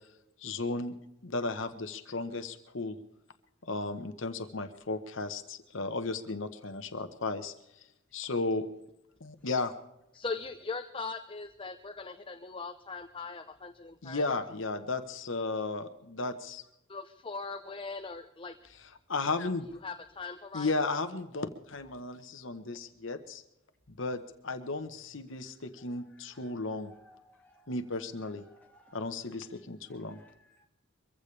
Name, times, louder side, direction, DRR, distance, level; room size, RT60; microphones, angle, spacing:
voice 1, 0.4-0.9 1.2-3.0 3.6-7.8 8.1-8.7 9.2-9.7 14.0-16.6 19.1-19.7 20.5-23.4 24.0-26.9 27.7-28.4 28.9-30.2, left 3 dB, 65° left, 9 dB, 1.1 m, -34 dB
voice 2, 10.1-14.4 16.9-18.5 19.7-20.9, left 4 dB, 25° left, 7 dB, 0.7 m, -40 dB
voice 3, 26.4-27.7 28.5-29.0 30.1-30.3 30.6-30.7, left 1 dB, 10° left, -2 dB, 3.1 m, -60 dB
23.5 x 15.5 x 3.3 m, 0.86 s
head